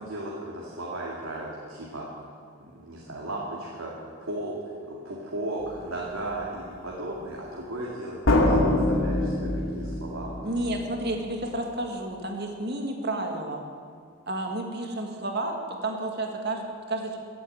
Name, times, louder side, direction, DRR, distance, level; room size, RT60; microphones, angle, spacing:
voice 1, 0.0-2.1 2.6-3.9 4.2-4.6 4.9-10.5, right 1 dB, 85° right, -4 dB, 2.3 m, -35 dB
sound 1, 5.6-5.9 8.3-10.9, left 1 dB, 75° left, 2.2 m, -24 dB
voice 2, 10.4-13.6 14.3-17.2, right 1 dB, 50° right, 2 dB, 1.9 m, -31 dB
15.5 x 8.5 x 8.7 m, 2.1 s
head